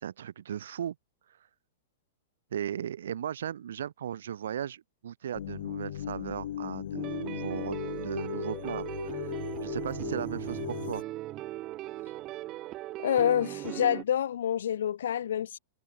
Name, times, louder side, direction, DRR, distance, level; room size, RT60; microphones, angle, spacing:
voice 1, 0.0-0.9 2.5-9.3 9.6-11.0, right 9 dB, 85° right, 1.3 m, -37 dB
sound 1, 5.3-11.0, left 11 dB, 65° left, 0.4 m, -37 dB
sound 2, 6.9-14.0, right 16 dB, 25° right, 0.7 m, -38 dB
voice 2, 13.0-15.6, left 10 dB, 80° left, 1.2 m, -27 dB
supercardioid pair, 175°, 0 cm